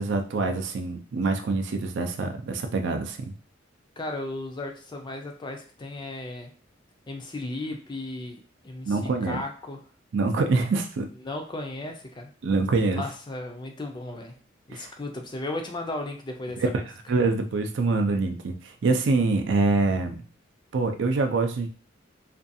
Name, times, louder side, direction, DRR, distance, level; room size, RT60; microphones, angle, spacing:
voice 1, 0.0-3.3 8.9-9.4 10.1-11.1 12.4-13.0 14.7-14.9 16.6-16.8 17.1-20.2 20.7-21.7, right 3 dB, 65° right, 5 dB, 0.4 m, -25 dB
voice 2, 4.0-6.5 7.1-9.8 11.2-12.3 13.0-14.4 14.7-16.8, left 2 dB, 25° left, 4 dB, 0.4 m, -35 dB
2.5 x 2.3 x 2.6 m, 0.39 s
head